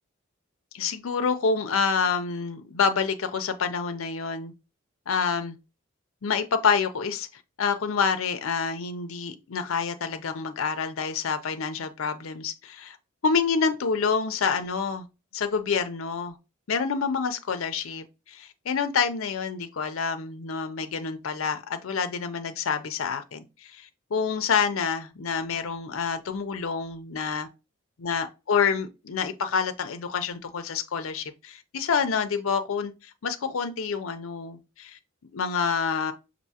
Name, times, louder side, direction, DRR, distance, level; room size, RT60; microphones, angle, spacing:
voice 1, 0.7-4.5 5.1-5.6 6.2-7.3 7.6-13.0 13.2-15.1 15.3-16.4 16.7-27.5 28.0-32.9 33.2-35.0 35.3-36.1, left 5 dB, 75° left, 0.5 m, -27 dB
5.5 x 2.6 x 2.8 m
head